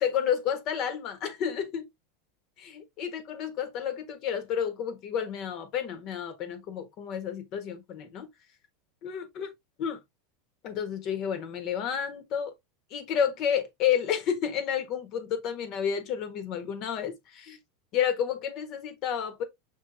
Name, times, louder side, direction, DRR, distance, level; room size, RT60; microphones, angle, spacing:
voice 1, 0.0-1.9 2.6-8.3 9.0-9.5 9.8-10.0 10.6-12.5 12.9-17.6 17.9-19.4, left 8 dB, 45° left, 1.3 m, -30 dB
5.7 x 3.1 x 2.6 m
supercardioid pair, 135°, 0 cm